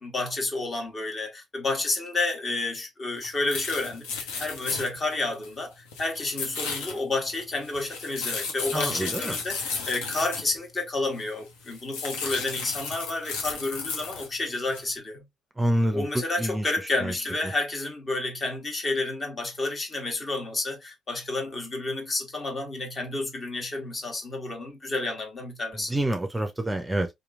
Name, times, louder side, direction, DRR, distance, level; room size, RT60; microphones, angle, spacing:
voice 1, 0.0-15.2 15.9-25.9, left 2 dB, 40° left, 1.3 m, -30 dB
sound 1, 3.2-3.3 3.5-5.6 5.9-10.5 11.2-11.3 11.6-14.3 14.7-14.9, left 5 dB, 75° left, 0.7 m, -34 dB
voice 2, 8.7-9.4 15.6-16.1 16.4-16.7 17.0-17.1 25.9-27.1, right 1 dB, 15° right, 0.5 m, -27 dB
2.9 x 2.4 x 2.4 m
hypercardioid pair, 50°, 0 cm